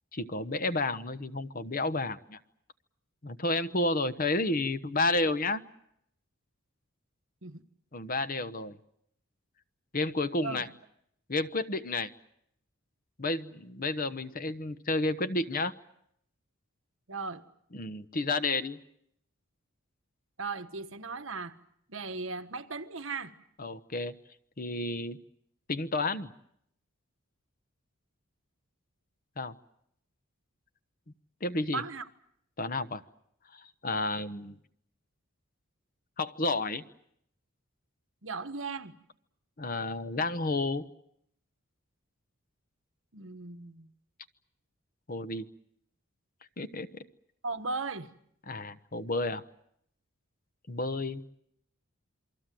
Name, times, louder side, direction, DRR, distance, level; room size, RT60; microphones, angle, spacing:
voice 1, 0.1-2.4 3.2-5.6 7.9-8.8 9.9-10.7 11.3-12.1 13.2-15.7 17.7-18.8 23.6-24.1 24.6-25.2 25.7-26.3 29.4-29.5 31.4-31.8 32.6-33.0 33.5-34.6 36.2-36.8 39.6-40.9 45.1-45.5 46.6-46.9 48.5-49.4 50.7-51.3, left 2 dB, 45° left, 1.1 m, -31 dB
voice 2, 17.1-17.4 20.4-21.6 21.9-23.3 31.7-32.1 38.2-38.9 43.1-43.9 47.4-48.1, right 4 dB, 65° right, 1.4 m, -37 dB
28.0 x 23.5 x 7.7 m
head